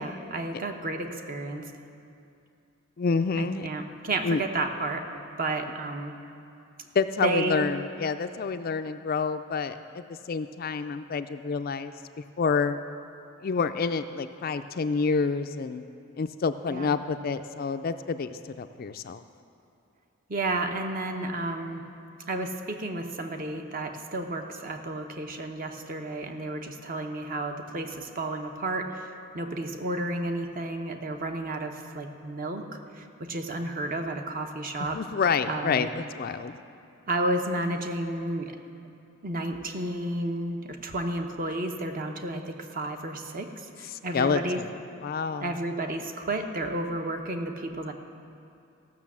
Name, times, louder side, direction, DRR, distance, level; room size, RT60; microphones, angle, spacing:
voice 1, 0.0-1.7 3.4-5.1 5.4-6.1 7.2-7.7 16.7-16.9 20.3-21.8 22.3-32.6 32.9-35.0 35.5-35.9 37.1-38.5 39.2-44.6 45.4-47.9, right 2 dB, 40° right, 4 dB, 0.9 m, -32 dB
voice 2, 3.0-3.7 4.2-4.4 6.9-10.0 10.3-11.9 12.4-12.8 13.4-15.8 16.2-19.2 34.8-36.5 43.9-44.7 45.0-45.5, left 5 dB, 45° left, 9 dB, 0.4 m, -28 dB
15.0 x 6.1 x 7.3 m, 2.6 s
head